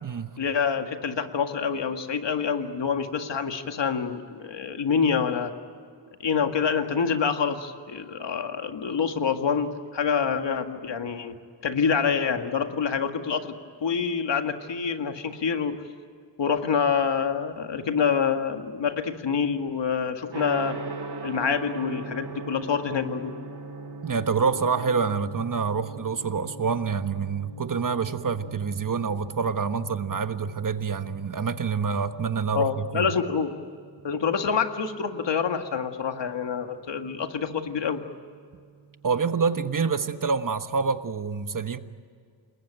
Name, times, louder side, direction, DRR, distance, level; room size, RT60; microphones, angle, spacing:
voice 1, 0.4-5.5 6.2-11.4 11.6-13.6 13.8-15.8 16.4-20.8 21.2-23.3 32.5-33.5 34.0-38.0, left 6 dB, 80° left, 6 dB, 2.0 m, -26 dB
Gong, 20.3-39.3, right 3 dB, 70° right, 3.8 m, -42 dB
voice 2, 24.0-33.1 39.0-41.8, right 5 dB, 45° right, 10 dB, 1.3 m, -27 dB
28.5 x 21.5 x 9.0 m, 2.2 s
wide cardioid pair, 130°, 43 cm